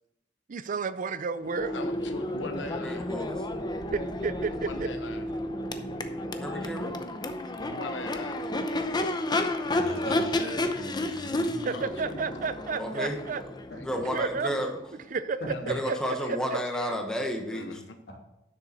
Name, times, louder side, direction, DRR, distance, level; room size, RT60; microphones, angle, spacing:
voice 1, 0.5-1.8 3.9-4.9 11.6-13.4 14.1-14.5 15.1-16.6, right 5 dB, 45° right, 14 dB, 0.4 m, -31 dB
Crowd / Race car auto racing / Accelerating revving vroom, 1.4-15.2, left 1 dB, 25° left, 0.7 m, -32 dB
voice 2, 1.7-3.1 4.6-5.3 7.6-8.5 11.7-12.2 13.7-13.8 15.5-17.0 17.5-18.0, left 2 dB, 80° left, 7 dB, 0.9 m, -41 dB
voice 3, 2.7-3.4 6.4-6.9 12.8-13.3 13.8-14.7 15.6-17.8, equal, 5° left, 2 dB, 1.2 m, -32 dB
voice 4, 9.7-11.7 15.4-15.7, equal, 60° left, -1 dB, 2.9 m, -39 dB
11.5 x 6.8 x 4.2 m, 0.88 s
head